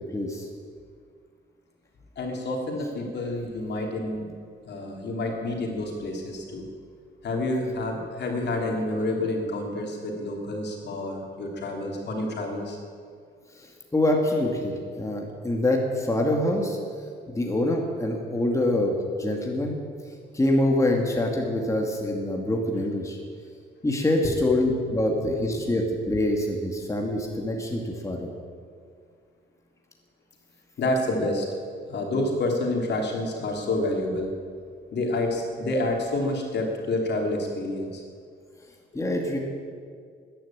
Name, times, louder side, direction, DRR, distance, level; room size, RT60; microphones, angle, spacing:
voice 1, 0.1-0.5 13.6-16.8 17.3-19.8 20.3-23.2 23.8-28.3 38.9-39.4, left 1 dB, 15° left, 0 dB, 2.2 m, -25 dB
voice 2, 2.2-4.3 4.6-6.7 7.2-12.8 24.2-25.8 27.0-27.1 30.8-31.5 31.9-34.4 34.9-38.0, left 2 dB, 60° left, 1 dB, 3.3 m, -29 dB
13.5 x 10.5 x 8.8 m, 2.1 s
cardioid pair, 90°, 20 cm